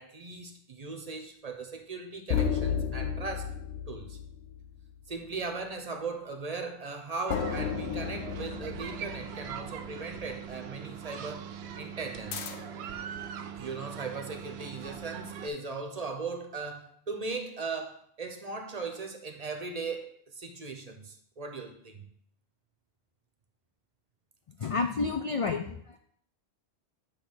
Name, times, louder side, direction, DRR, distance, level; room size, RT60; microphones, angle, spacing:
voice 1, 0.0-3.6 3.9-4.2 5.1-11.5 11.8-12.5 13.6-22.0, right 4 dB, 40° right, 0.8 m, -38 dB
sound 1, 2.3-5.1 7.3-10.0 12.3-12.9, left 7 dB, 90° left, 0.9 m, -33 dB
sound 2, 7.3-15.5, right 8 dB, 80° right, 0.8 m, -41 dB
voice 2, 24.6-26.0, left 4 dB, 60° left, 0.3 m, -30 dB
8.5 x 3.1 x 6.0 m
omnidirectional pair, 1.1 m